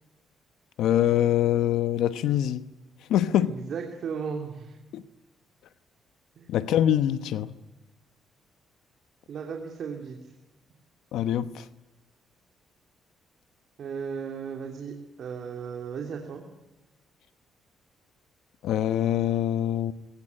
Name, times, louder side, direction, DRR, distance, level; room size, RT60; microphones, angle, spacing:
voice 1, 0.8-2.7 3.1-3.6 4.9-5.0 6.5-7.5 11.1-11.6 18.6-19.9, left 11 dB, 85° left, 1.0 m, -24 dB
voice 2, 3.4-4.8 6.4-6.5 9.3-10.3 13.8-16.4, right 6 dB, 60° right, 2.9 m, -36 dB
23.0 x 18.0 x 9.7 m
cardioid pair, 90°, 0 cm